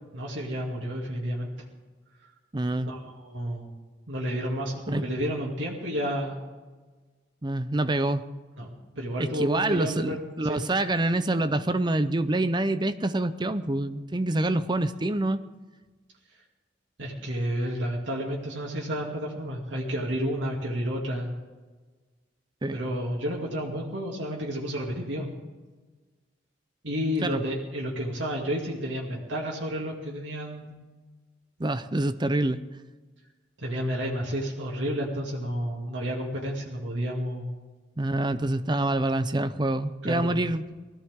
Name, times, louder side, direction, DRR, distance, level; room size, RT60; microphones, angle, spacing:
voice 1, 0.1-1.5 2.8-3.7 4.1-6.4 8.6-8.7 9.0-10.7 17.0-21.3 22.7-25.3 26.8-30.8 33.6-37.5 40.0-40.5, equal, 85° right, -3 dB, 2.5 m, -31 dB
voice 2, 2.5-2.9 4.9-5.0 7.4-8.3 9.2-15.4 22.6-22.8 27.2-27.4 31.6-32.6 38.0-40.6, right 2 dB, 25° right, 12 dB, 0.6 m, -26 dB
20.5 x 15.5 x 3.7 m, 1.3 s
head